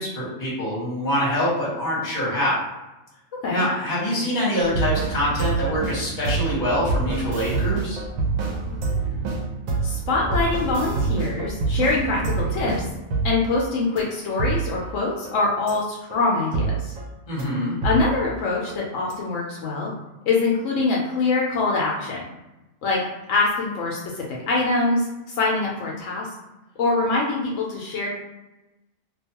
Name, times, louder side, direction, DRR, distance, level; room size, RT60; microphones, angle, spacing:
voice 1, 0.0-2.6 3.5-8.0 17.3-17.8, equal, 40° left, -6 dB, 1.1 m, -25 dB
sound 1, 4.6-13.6 14.0-14.1 14.4-14.9 15.3-15.4 15.7-15.8 16.1-16.2 16.5-17.1 17.4-17.5 17.8-18.4 18.7-18.8 19.1-19.2, right 4 dB, 90° right, 1.0 m, -26 dB
voice 2, 9.8-12.9 13.2-16.9 17.8-19.9 20.3-22.2 22.8-23.0 23.3-26.3 26.8-28.1, left 3 dB, 80° left, -3 dB, 0.9 m, -24 dB
2.5 x 2.2 x 2.8 m, 0.99 s
omnidirectional pair, 1.3 m